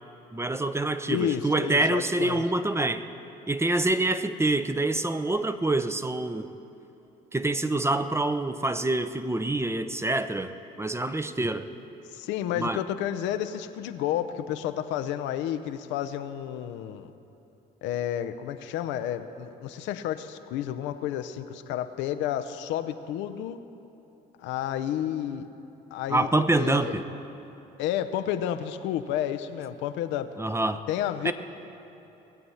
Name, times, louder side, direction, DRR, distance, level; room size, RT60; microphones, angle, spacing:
voice 1, 0.3-3.0 3.5-6.5 7.3-11.7 12.6-12.8 26.1-27.0 30.4-30.8 31.2-31.3, right 2 dB, 15° right, 11 dB, 0.7 m, -26 dB
voice 2, 1.1-2.4 12.1-17.1 17.8-23.6 24.4-25.5 25.9-27.0 27.8-30.3 30.9-31.3, left 10 dB, 75° left, 9 dB, 0.7 m, -31 dB
19.5 x 7.8 x 5.6 m, 3.0 s
supercardioid pair, 65°, 19 cm